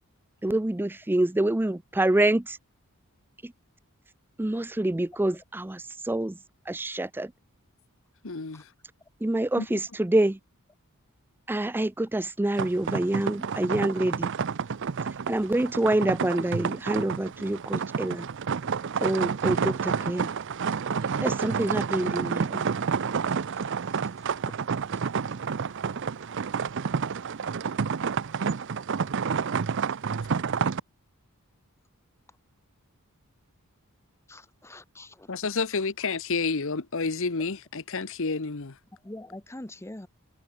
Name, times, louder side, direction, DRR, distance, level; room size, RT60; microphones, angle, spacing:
voice 1, 0.4-2.6 3.4-3.5 4.4-6.4 6.7-7.3 9.2-10.4 11.5-14.3 15.3-18.3 19.0-20.3 21.2-22.6, right 1 dB, 10° right, 0.4 m, -26 dB
voice 2, 8.2-8.6 9.6-9.8 35.3-38.7, left 4 dB, 60° left, 1.1 m, -30 dB
sound 1, 12.6-30.8, right 6 dB, 55° right, 0.6 m, -29 dB
voice 3, 23.5-24.0 24.9-25.0 34.3-35.3 39.0-40.1, left 1 dB, 10° left, 0.8 m, -44 dB
head